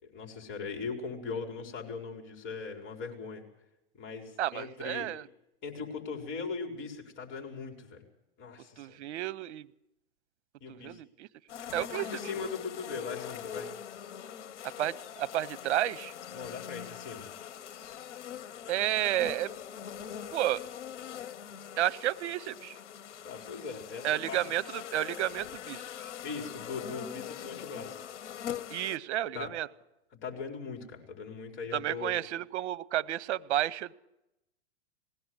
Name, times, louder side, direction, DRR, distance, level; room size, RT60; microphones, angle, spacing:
voice 1, 0.0-3.4 4.0-5.1 5.6-8.0 8.4-9.0 10.6-11.0 11.6-13.7 16.3-17.2 23.2-24.4 26.2-28.0 29.3-29.5 30.2-32.1, left 5 dB, 35° left, 3 dB, 5.1 m, -40 dB
voice 2, 4.4-5.3 8.8-9.7 10.7-11.3 11.7-12.1 12.4-12.5 14.8-16.1 18.7-19.5 20.3-20.6 21.8-22.8 24.0-25.8 28.7-29.7 31.7-33.9, right 13 dB, 70° right, 17 dB, 0.9 m, -31 dB
sound 1, 11.5-29.0, left 9 dB, 75° left, 1.3 m, -43 dB
20.5 x 16.5 x 8.1 m, 0.89 s
hypercardioid pair, 125°, 35 cm